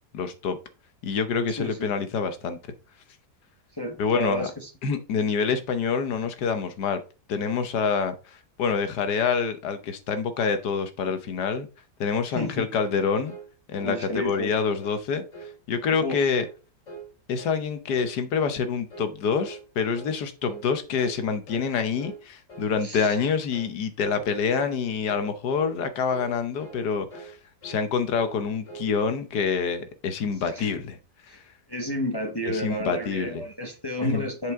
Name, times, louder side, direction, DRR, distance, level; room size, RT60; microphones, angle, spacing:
voice 1, 0.1-0.6 1.0-2.6 4.0-4.5 4.8-7.0 7.3-11.7 12.0-13.3 13.7-16.4 17.3-27.4 27.6-31.0 31.3-31.4 32.5-33.4 34.0-34.2, left 6 dB, 75° left, 1.5 m, -26 dB
voice 2, 1.5-1.9 3.8-4.7 12.3-12.7 13.8-14.5 16.0-16.2 22.8-23.1 30.4-30.7 31.3-31.4 31.7-34.5, equal, 20° left, 0.8 m, -31 dB
sound 1, 12.8-13.0 13.3-13.5 13.8-14.0 14.3-14.5 14.8-15.0 15.3-15.5 15.8-16.1 16.3-16.6 16.9-17.1 17.4-17.6 17.9-18.1 18.4-18.6 18.9-19.1 19.4-19.6 19.9-20.2 20.4-20.7 20.9-21.2 21.5-21.7 22.0-22.2 22.5-22.7 23.0-23.2 23.5-23.7 24.0-24.3 24.5-24.8 25.1-25.3 25.6-25.8 26.1-26.3 26.6-26.8 27.1-27.4 27.6-27.8 28.1-28.9, right 3 dB, 45° left, 2.6 m, -42 dB
7.7 x 5.2 x 3.6 m
omnidirectional pair, 1.8 m